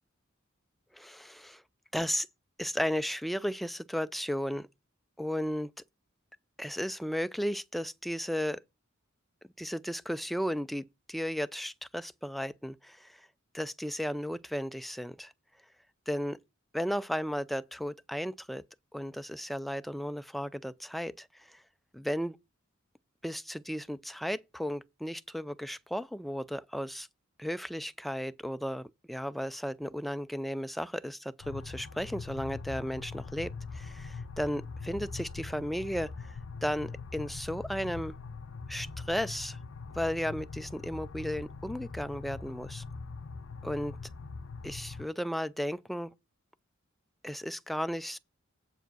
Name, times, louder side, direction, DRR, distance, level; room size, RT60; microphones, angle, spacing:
voice 1, 0.9-1.6 1.9-2.3 2.6-4.7 5.2-5.7 6.6-8.6 9.6-13.2 13.5-15.3 16.1-16.4 16.7-18.6 18.9-21.6 21.9-22.4 23.2-27.1 27.4-38.1 38.7-39.6 39.9-42.8 43.6-44.0 44.6-46.1 47.2-48.2, equal, ahead, 0.4 m, -34 dB
sound 1, 31.4-45.1, left 4 dB, 85° left, 0.5 m, -42 dB
8.0 x 4.8 x 6.1 m
head